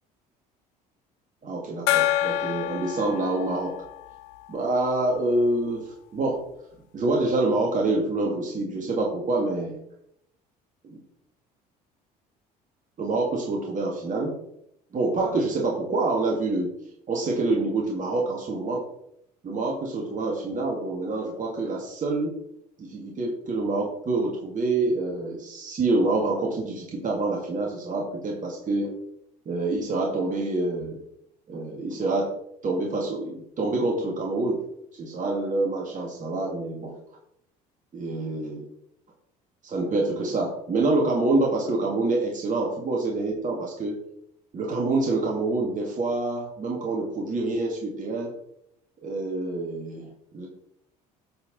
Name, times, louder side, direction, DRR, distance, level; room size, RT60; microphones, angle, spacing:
voice 1, 1.4-3.8 4.5-6.5 6.9-9.8 10.8-11.0 13.0-14.4 14.9-16.7 17.1-18.9 19.4-22.4 22.8-28.9 29.5-31.0 31.5-32.3 32.6-34.6 34.9-37.0 37.9-38.7 39.6-44.0 44.5-48.3 49.0-50.1 50.3-50.5, right 2 dB, 40° right, -1 dB, 2.2 m, -26 dB
Gong, 1.9-5.1, left 13 dB, 70° left, 0.9 m, -28 dB
9.4 x 5.8 x 4.2 m, 0.74 s
hypercardioid pair, 60°, 21 cm